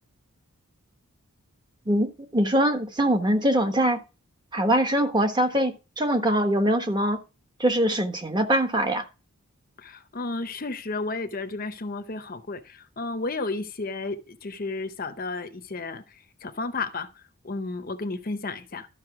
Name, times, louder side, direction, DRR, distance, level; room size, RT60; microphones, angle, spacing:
voice 1, 1.9-4.0 4.5-7.2 7.6-9.0, right 1 dB, 20° right, 1.2 m, -23 dB
voice 2, 9.8-18.9, left 3 dB, 40° left, 0.7 m, -33 dB
12.5 x 5.5 x 4.8 m
head